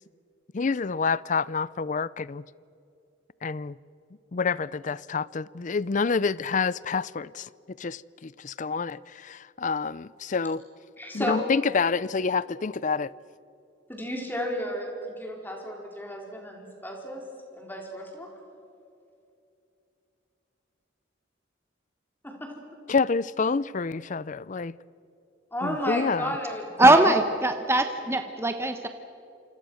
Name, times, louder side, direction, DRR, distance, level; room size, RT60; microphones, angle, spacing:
voice 1, 0.5-2.4 3.4-3.8 4.3-7.5 7.8-10.6 11.1-13.1 22.9-24.7 25.6-26.3, left 5 dB, 40° left, 0.5 m, -28 dB
voice 2, 11.0-11.4 13.9-17.3 17.5-18.3 22.2-22.5 25.5-27.1, equal, 10° left, 4.6 m, -33 dB
voice 3, 26.8-28.9, right 2 dB, 15° right, 1.0 m, -20 dB
29.0 x 26.0 x 6.5 m
head